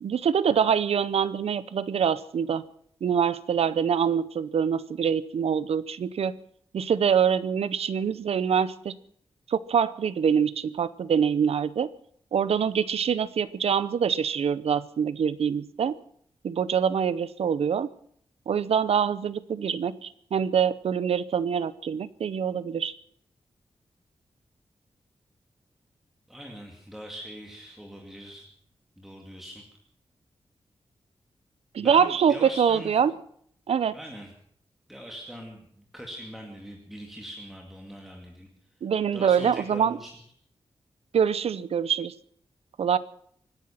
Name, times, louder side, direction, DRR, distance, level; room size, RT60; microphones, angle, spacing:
voice 1, 0.0-2.6 3.0-6.3 6.7-9.0 9.5-11.9 12.3-16.0 16.4-17.9 18.5-22.9 31.7-33.1 33.7-33.9 38.8-40.0 41.1-42.1 42.8-43.0, right 7 dB, 85° right, 17 dB, 0.7 m, -25 dB
voice 2, 26.3-28.4 29.0-29.6 31.8-33.0 33.9-34.3 34.9-38.5 39.1-40.1, equal, 5° right, 0 dB, 2.2 m, -42 dB
24.5 x 10.0 x 5.8 m, 0.63 s
wide cardioid pair, 170°, 10 cm